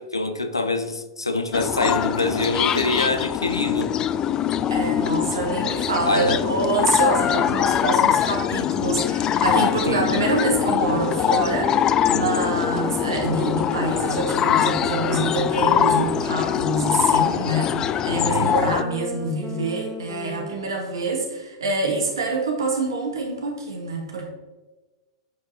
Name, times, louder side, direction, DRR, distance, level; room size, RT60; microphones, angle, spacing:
voice 1, 0.0-3.9 6.0-6.4 9.9-10.3 18.1-18.5, left 2 dB, 85° left, 8 dB, 0.7 m, -25 dB
sound 1, 1.5-18.8, left 9 dB, 30° left, 0.3 m, -23 dB
voice 2, 4.7-24.3, right 3 dB, 70° right, 1 dB, 2.0 m, -26 dB
sound 2, 11.3-21.0, left 2 dB, 5° left, 0.9 m, -35 dB
8.4 x 4.9 x 4.2 m, 1.2 s
figure-of-eight pair, 95°, 2 cm